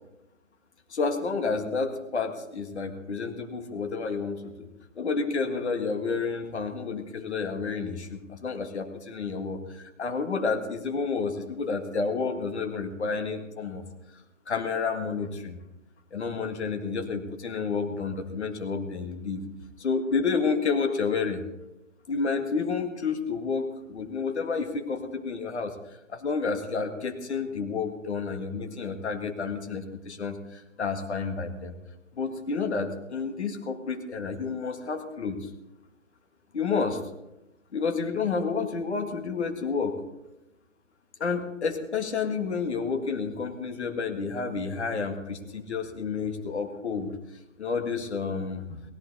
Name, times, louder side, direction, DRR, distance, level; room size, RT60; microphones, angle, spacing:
voice 1, 0.9-4.7 5.0-13.8 14.5-15.6 16.1-19.4 19.8-21.4 22.1-25.8 26.1-31.7 32.1-35.5 36.5-37.0 37.7-40.0 41.2-47.1 47.6-48.8, left 5 dB, 55° left, 6 dB, 1.8 m, -30 dB
17.0 x 14.0 x 4.1 m, 0.90 s
hypercardioid pair, 170°, 39 cm